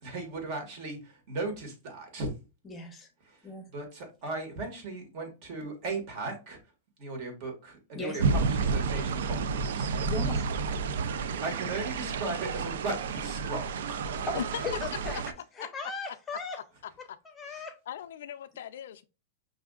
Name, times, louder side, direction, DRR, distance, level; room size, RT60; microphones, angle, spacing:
voice 1, 0.0-2.3 3.3-3.4 3.7-6.6 7.0-10.1 10.9-11.1 11.4-14.0 17.5-17.6, right 3 dB, 45° right, 1.6 m, -37 dB
voice 2, 2.6-3.1 3.4-3.6 7.9-8.2 10.1-10.5 14.3-15.2 15.6-16.6 17.2-17.8, left 3 dB, 15° left, 0.7 m, -37 dB
sound 1, 8.2-15.3, right 5 dB, 80° right, 0.4 m, -30 dB
voice 3, 17.9-19.0, left 10 dB, 80° left, 0.4 m, -38 dB
5.6 x 2.6 x 2.3 m
supercardioid pair, 150°, 0 cm